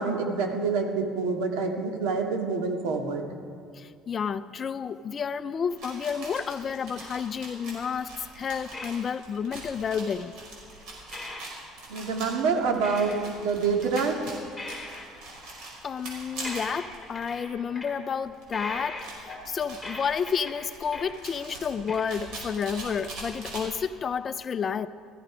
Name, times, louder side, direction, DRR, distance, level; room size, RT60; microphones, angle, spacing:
voice 1, 0.0-3.2 11.9-14.2, right 4 dB, 85° right, 1.9 m, -27 dB
voice 2, 3.7-10.4 15.8-24.9, left 6 dB, 25° left, 0.4 m, -31 dB
sound 1, 5.7-17.5 18.0-18.1 18.3-23.6, right 2 dB, 60° right, 5.1 m, -43 dB
sound 2, 8.7-9.2 10.0-10.4 10.8-10.9 11.1-11.5 11.9-12.1 12.8-13.4 13.8-14.1 14.6-15.1 16.1-16.2 16.4-18.0 18.5-21.1 21.5-21.6 21.9-22.0, left 2 dB, 5° left, 2.1 m, -40 dB
17.5 x 14.5 x 4.9 m
cardioid pair, 155°, 0 cm